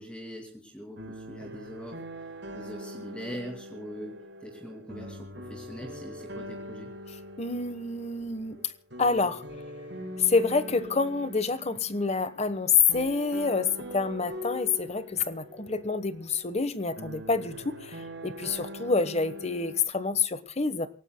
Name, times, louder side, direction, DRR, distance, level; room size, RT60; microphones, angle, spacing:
voice 1, 0.0-2.0 2.5-6.9, equal, 5° left, 2 dB, 2.5 m, -42 dB
sound 1, 1.0-19.8, equal, 75° right, 5.9 m, -42 dB
voice 2, 7.4-8.6 9.0-9.4 10.2-20.9, left 4 dB, 35° left, 13 dB, 1.2 m, -27 dB
27.5 x 18.0 x 2.2 m, 0.36 s
head